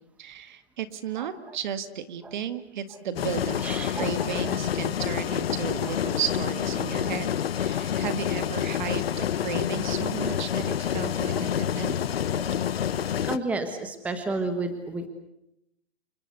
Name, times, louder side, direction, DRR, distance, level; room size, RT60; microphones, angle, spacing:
voice 1, 0.2-3.6 3.9-7.3 7.6-12.0, right 8 dB, 45° right, 11 dB, 1.9 m, -34 dB
voice 2, 1.2-1.6 2.2-2.3 3.6-4.6 5.8-5.9 7.0-7.1 10.2-10.4 11.3-11.5 12.3-12.5 13.2-15.1, right 2 dB, 5° right, 8 dB, 1.3 m, -32 dB
sound 1, 3.2-13.4, left 9 dB, 65° left, 1.1 m, -28 dB
28.5 x 25.0 x 6.8 m, 0.79 s
hypercardioid pair, 155°, 33 cm